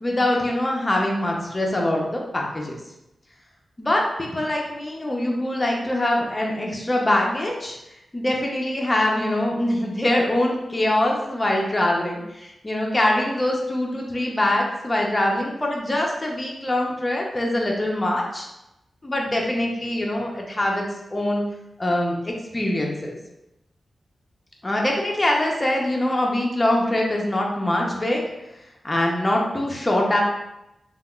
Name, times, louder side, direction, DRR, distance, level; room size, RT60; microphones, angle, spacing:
voice 1, 0.0-2.8 3.8-7.8 8.1-18.5 19.0-20.8 21.1-21.4 21.8-23.2 24.6-28.2 28.8-30.2, left 1 dB, 25° left, -1 dB, 0.6 m, -23 dB
3.3 x 2.4 x 2.3 m, 0.89 s
cardioid pair, 70°, 0 cm